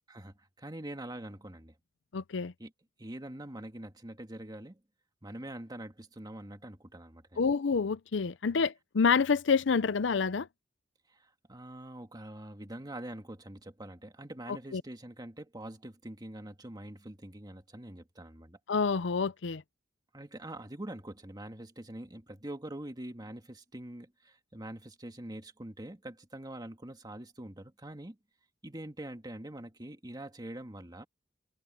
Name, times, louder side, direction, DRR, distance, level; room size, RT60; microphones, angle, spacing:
voice 1, 0.1-1.7 2.6-2.7 3.0-4.8 5.2-7.5 11.1-18.6 20.1-28.2 28.6-31.1, right 1 dB, 20° right, 1.9 m, -44 dB
voice 2, 2.1-2.5 7.4-10.5 14.7-14.8 18.7-19.6, left 5 dB, 70° left, 0.6 m, -28 dB
head